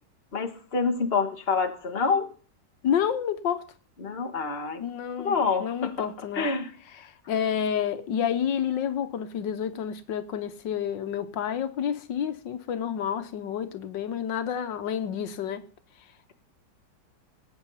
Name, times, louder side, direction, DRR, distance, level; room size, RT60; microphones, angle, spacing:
voice 1, 0.3-2.3 4.0-4.8 5.2-6.1 6.3-6.7, left 5 dB, 35° left, 1.9 m, -27 dB
voice 2, 2.8-3.6 4.8-5.4 5.6-6.5 7.0-15.7, left 8 dB, 90° left, 1.8 m, -29 dB
17.5 x 9.4 x 5.6 m
omnidirectional pair, 1.9 m